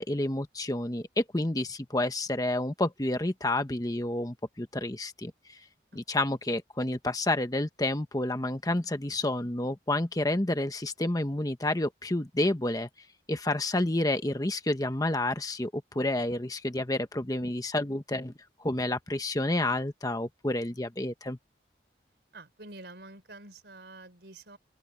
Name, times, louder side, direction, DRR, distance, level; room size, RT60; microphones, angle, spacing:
voice 1, 0.0-5.6 5.9-12.9 13.3-18.3 18.6-21.4, left 1 dB, 20° left, 1.1 m, -29 dB
voice 2, 6.3-6.6 22.3-24.6, right 2 dB, 65° right, 4.1 m, -48 dB
open air
head